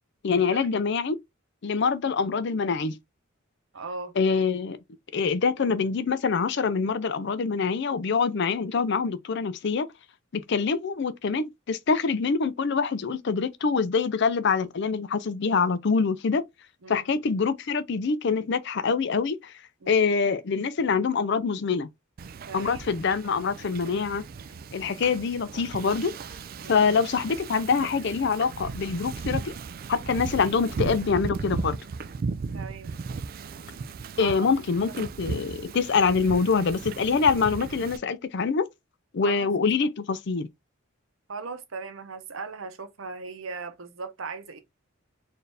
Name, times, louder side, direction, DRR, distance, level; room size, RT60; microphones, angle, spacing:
voice 1, 0.2-1.2 1.6-3.0 4.2-4.8 5.1-9.9 10.3-16.4 16.9-19.5 19.9-21.9 22.5-24.2 24.7-26.1 26.7-29.5 29.9-31.8 34.2-38.7 39.1-40.5, left 5 dB, 55° left, 0.5 m, -25 dB
voice 2, 3.7-4.1 10.6-10.7 16.8-17.1 19.8-20.0 22.5-22.8 26.6-26.8 32.5-32.9 34.2-34.5 39.2-39.5 41.3-44.6, right 4 dB, 70° right, 0.9 m, -38 dB
Wind / Ocean, 22.2-38.0, right 4 dB, 45° right, 0.3 m, -36 dB
4.4 x 2.6 x 3.3 m
head